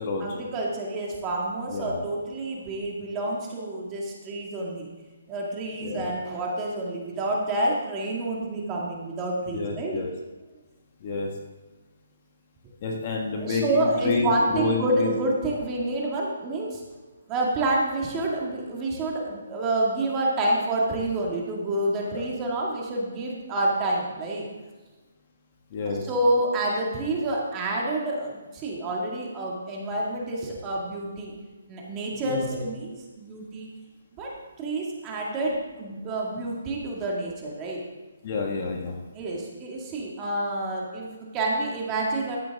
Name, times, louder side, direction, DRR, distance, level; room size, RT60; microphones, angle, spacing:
voice 1, 0.2-4.9 5.3-10.0 13.4-16.8 17.3-24.5 25.9-31.3 31.7-33.7 34.1-37.8 39.1-42.4, right 2 dB, 20° right, -2 dB, 2.1 m, -28 dB
voice 2, 1.7-2.0 5.8-6.1 9.5-10.1 11.0-11.3 12.8-14.3 14.5-15.1 22.1-22.3 25.7-26.0 32.2-32.5 38.2-39.0, left 4 dB, 35° left, 1 dB, 1.6 m, -29 dB
13.5 x 9.1 x 3.6 m, 1.2 s
hypercardioid pair, 165°, 0 cm